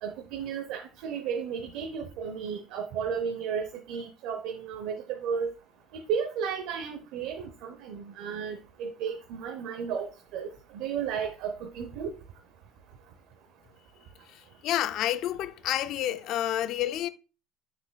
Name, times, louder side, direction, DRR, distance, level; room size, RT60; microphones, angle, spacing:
voice 1, 0.0-5.5 5.9-10.5 10.7-12.1, right 7 dB, 65° right, 0.7 m, -33 dB
voice 2, 14.3-17.1, left 12 dB, 50° left, 0.4 m, -29 dB
7.9 x 6.0 x 2.2 m
cardioid pair, 165°, 0 cm